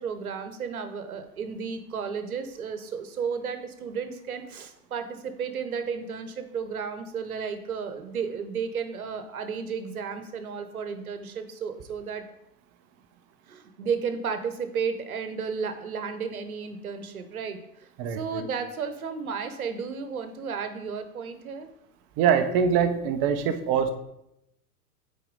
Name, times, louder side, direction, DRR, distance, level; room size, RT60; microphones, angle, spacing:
voice 1, 0.0-12.2 13.5-21.7, right 6 dB, 65° right, 8 dB, 1.0 m, -33 dB
voice 2, 18.0-18.4 22.2-23.9, right 7 dB, 25° right, 8 dB, 0.6 m, -23 dB
8.6 x 4.2 x 3.9 m, 0.81 s
figure-of-eight pair, 100°, 46 cm